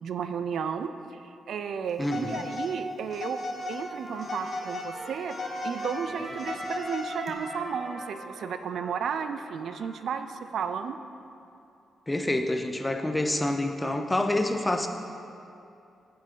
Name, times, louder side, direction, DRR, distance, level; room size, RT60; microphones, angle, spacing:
voice 1, 0.0-3.4 3.7-5.4 5.6-11.0, right 7 dB, 65° right, 9 dB, 0.3 m, -33 dB
Telephone, 2.0-2.7 3.1-3.8 4.2-4.9 5.3-7.3, left 2 dB, 40° left, 0.8 m, -36 dB
voice 2, 2.0-2.5 12.1-14.9, left 1 dB, 10° left, 6 dB, 0.4 m, -27 dB
Trumpet, 3.6-10.2, right 1 dB, 30° right, 1.5 m, -43 dB
8.9 x 8.3 x 3.7 m, 2.7 s
wide cardioid pair, 165°, 0 cm